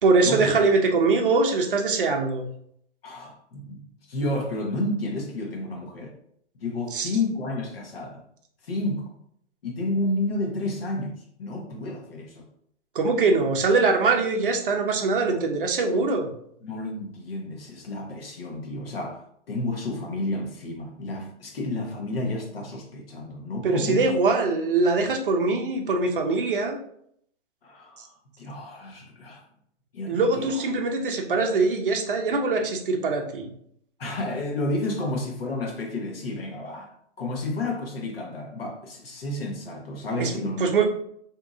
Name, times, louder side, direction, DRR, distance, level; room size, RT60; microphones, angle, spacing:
voice 1, 0.0-2.5 6.9-7.1 12.9-16.3 23.6-26.8 30.1-33.5 40.2-40.8, right 3 dB, 50° right, 0.6 m, -22 dB
voice 2, 3.0-3.8 4.1-6.1 6.6-8.2 8.6-9.1 9.6-12.5 15.9-16.0 16.6-19.2 19.5-24.1 27.6-29.4 29.9-30.5 34.0-36.9 37.2-40.6, left 2 dB, 55° left, 1.0 m, -31 dB
2.8 x 2.5 x 3.6 m
hypercardioid pair, 180°, 35 cm